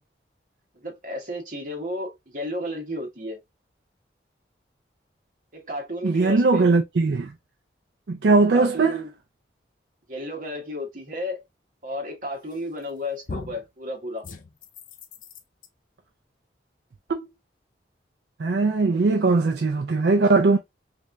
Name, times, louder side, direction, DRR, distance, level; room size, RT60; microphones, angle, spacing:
voice 1, 0.8-3.4 5.5-6.7 8.5-9.1 10.1-11.4 11.8-14.2 18.9-19.6, left 1 dB, 45° right, 1.2 m, -33 dB
voice 2, 6.0-7.3 8.1-9.0 17.1-17.3 18.4-20.6, right 3 dB, 70° right, 0.4 m, -20 dB
sound 1, 12.5-12.9 13.3-13.7 14.2-15.7, left 3 dB, 45° left, 0.5 m, -39 dB
3.4 x 3.2 x 2.5 m
head